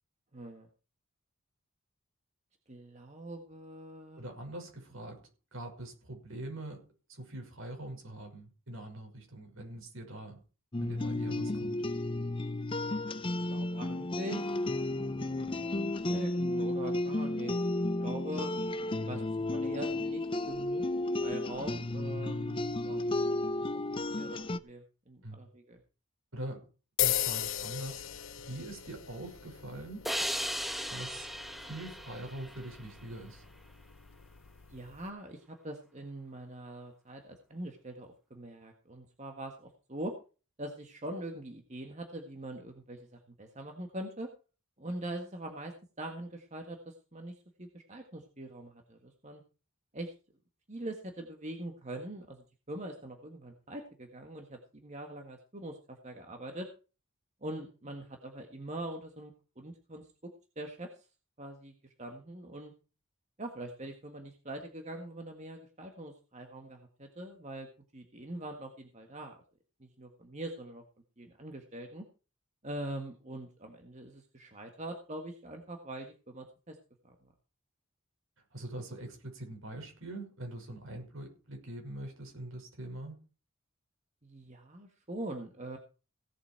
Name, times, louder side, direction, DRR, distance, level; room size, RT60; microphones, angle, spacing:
voice 1, 0.3-0.7 2.7-4.2 13.5-14.6 14.9-18.5 19.0-19.2 19.5-20.8 21.2-23.0 23.5-25.8 34.7-40.1 40.6-44.3 44.8-49.4 49.9-50.1 50.7-56.7 57.4-60.3 60.5-61.1 61.4-62.7 63.4-67.7 67.9-69.4 69.8-70.8 71.2-72.0 72.6-76.8 77.0-77.1 84.2-85.8, right 1 dB, 35° right, 4 dB, 1.7 m, -43 dB
voice 2, 4.2-6.8 7.1-10.4 10.8-11.8 25.2-25.4 26.3-26.7 27.0-28.0 28.4-30.1 30.9-31.3 31.6-33.4 78.5-83.2, right 1 dB, 70° right, 2 dB, 5.9 m, -43 dB
sound 1, 10.7-24.6, left 2 dB, 25° left, 0.6 m, -33 dB
sound 2, 27.0-35.1, left 12 dB, 65° left, 0.8 m, -38 dB
sound 3, 30.0-33.4, equal, ahead, 1.2 m, -37 dB
17.0 x 8.2 x 4.6 m, 0.34 s
head